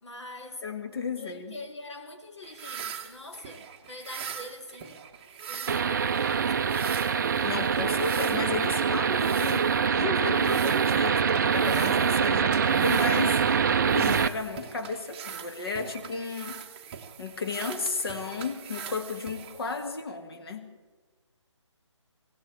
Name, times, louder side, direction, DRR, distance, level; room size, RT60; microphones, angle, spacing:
voice 1, 0.0-0.7 1.2-5.0 5.5-7.0, left 2 dB, 70° left, 4 dB, 2.2 m, -44 dB
voice 2, 0.6-1.6 7.4-13.4 13.9-16.6 17.2-20.7, left 4 dB, 50° left, 6 dB, 1.8 m, -33 dB
sound 1, 2.4-20.0, right 7 dB, 20° right, 0.8 m, -42 dB
sound 2, 5.7-14.3, right 6 dB, 40° right, 0.4 m, -24 dB
17.5 x 17.5 x 4.5 m, 1.4 s
figure-of-eight pair, 160°, 16 cm